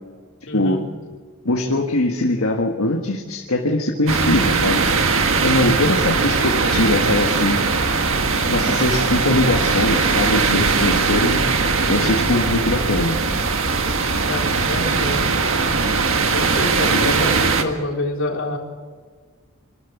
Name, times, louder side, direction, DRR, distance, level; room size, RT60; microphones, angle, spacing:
voice 1, 0.5-0.9 14.3-15.3 16.3-18.6, left 1 dB, 65° left, 0 dB, 4.1 m, -27 dB
voice 2, 1.4-4.9 5.4-7.7 8.5-11.4 11.9-13.2 16.9-17.2, left 2 dB, 80° left, 1 dB, 1.7 m, -21 dB
sound 1, 4.1-17.6, right 4 dB, 65° right, 1.7 m, -20 dB
26.0 x 13.0 x 8.2 m, 1.5 s
head